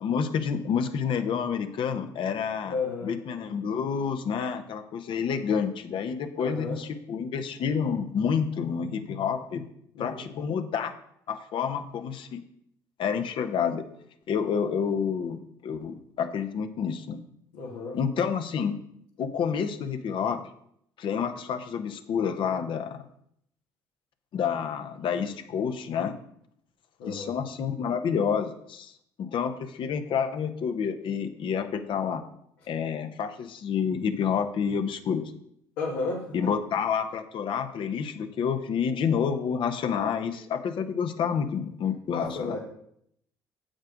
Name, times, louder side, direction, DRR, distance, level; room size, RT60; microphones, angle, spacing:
voice 1, 0.0-2.7 3.0-9.6 10.0-10.9 11.3-12.4 13.0-13.9 14.3-17.2 17.9-18.8 19.2-20.4 21.0-23.0 24.3-26.1 27.1-28.9 29.2-32.2 32.7-35.3 36.3-42.5, left 7 dB, 60° left, 8 dB, 0.9 m, -29 dB
voice 2, 2.6-3.2 6.4-6.8 9.9-10.3 17.5-18.0 27.0-27.3 35.8-36.4 42.1-42.6, left 4 dB, 90° left, -5 dB, 1.7 m, -32 dB
7.8 x 6.4 x 5.1 m, 0.72 s
supercardioid pair, 65°, 10 cm